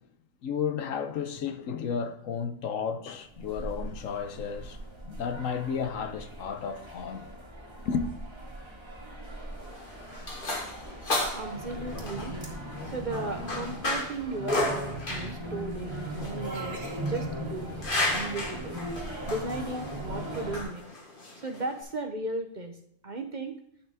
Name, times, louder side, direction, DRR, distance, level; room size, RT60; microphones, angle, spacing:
voice 1, 0.4-7.3 7.8-8.1, left 6 dB, 80° left, 1.2 m, -33 dB
sound 1, 3.3-20.6, right 1 dB, 20° right, 2.1 m, -39 dB
sound 2, 9.5-21.8, left 1 dB, 40° left, 1.6 m, -34 dB
voice 2, 11.3-12.4 12.9-17.7 18.1-18.8 19.3-20.8 21.4-22.8 23.0-23.6, right 2 dB, 40° right, 0.9 m, -35 dB
10.0 x 5.8 x 3.5 m
omnidirectional pair, 1.4 m